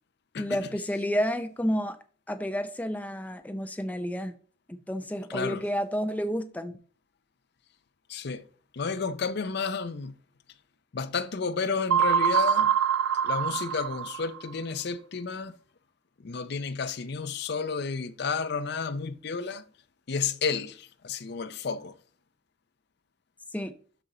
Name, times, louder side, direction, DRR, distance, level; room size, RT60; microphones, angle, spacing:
voice 1, 0.4-2.0 2.3-4.3 4.7-6.8 23.5-23.7, equal, 10° left, 0.5 m, -30 dB
voice 2, 5.3-5.6 8.1-8.4 8.7-10.1 10.9-12.7 13.2-15.5 16.2-19.6 20.1-21.9, left 5 dB, 55° left, 0.5 m, -31 dB
sound 1, 11.9-14.5, right 8 dB, 80° right, 0.3 m, -24 dB
12.0 x 4.4 x 3.8 m
head